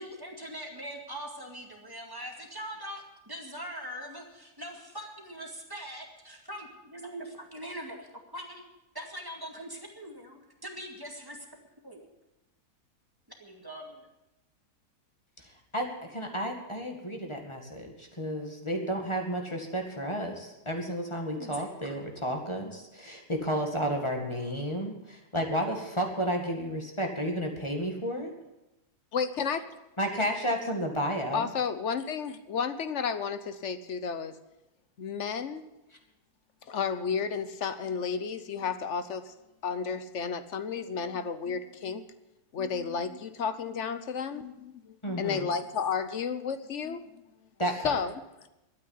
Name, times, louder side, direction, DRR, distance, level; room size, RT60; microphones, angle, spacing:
voice 1, 0.0-8.6 8.9-11.5 11.8-12.1 13.4-14.1 21.3-22.0, equal, 15° right, 1 dB, 2.2 m, -42 dB
voice 2, 15.7-28.3 30.0-31.5 45.0-45.5 47.6-48.0, equal, 20° left, 2 dB, 2.0 m, -32 dB
voice 3, 29.1-29.6 31.3-34.4 35.0-35.7 36.7-39.3 39.6-42.1 42.5-47.0 47.8-48.1, left 6 dB, 55° left, 12 dB, 1.0 m, -32 dB
12.5 x 9.5 x 9.6 m, 0.96 s
omnidirectional pair, 1.7 m